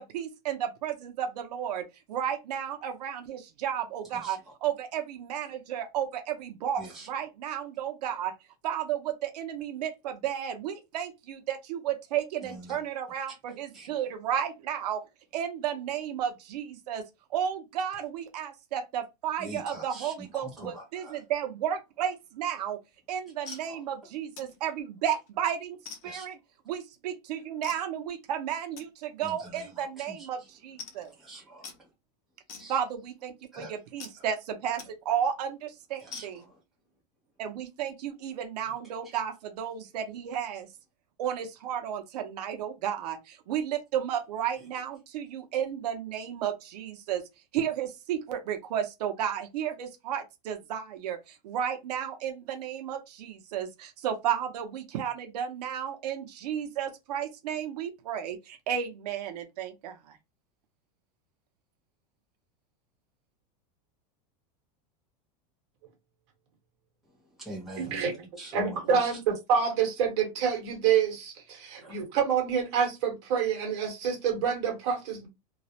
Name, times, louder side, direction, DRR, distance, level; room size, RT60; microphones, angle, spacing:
voice 1, 0.0-8.3 8.6-15.0 15.3-17.0 17.3-22.8 23.1-25.8 26.0-26.3 26.7-31.1 32.7-36.4 37.4-40.7 41.2-47.2 47.5-60.2, right 9 dB, 80° right, 0.6 m, -33 dB
voice 2, 4.1-4.5 6.8-7.1 12.4-12.8 13.7-13.9 19.4-21.2 23.4-23.8 26.0-26.3 29.2-30.5 31.1-31.9 32.6-32.8 33.5-33.7 34.2-34.3 36.0-36.6 39.0-39.1 67.4-68.0 68.4-69.2 71.8-72.1, right 1 dB, ahead, 0.7 m, -44 dB
sound 1, 22.9-23.0 23.5-23.7 24.4-24.6 25.0-25.3 25.9-26.4 27.6-27.9 28.8-28.9 29.6-29.7 30.0-30.1 30.4-30.5 30.8-31.1 31.6-31.8 32.5-33.1 34.0-34.2 34.8-34.9 35.3-35.4 36.1-36.5, left 5 dB, 65° left, 0.7 m, -45 dB
voice 3, 67.8-68.2 68.5-75.3, right 7 dB, 45° right, 1.1 m, -27 dB
2.3 x 2.0 x 2.7 m
supercardioid pair, 175°, 20 cm